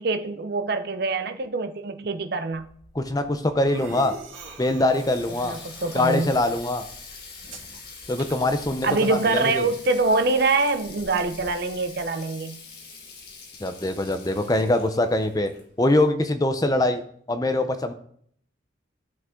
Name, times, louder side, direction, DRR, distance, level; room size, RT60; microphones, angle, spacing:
voice 1, 0.0-2.7 5.4-6.3 8.8-12.6, right 3 dB, 55° right, 0.7 m, -24 dB
sound 1, 2.5-12.0, right 2 dB, 85° right, 2.1 m, -47 dB
voice 2, 2.9-4.2 4.6-5.5 5.9-6.8 8.1-9.7 13.6-15.5 15.8-17.0 17.3-17.9, left 1 dB, 20° left, 0.6 m, -23 dB
Water tap faucet, 4.5-16.1, left 4 dB, 50° left, 1.7 m, -44 dB
12.5 x 5.9 x 3.8 m
head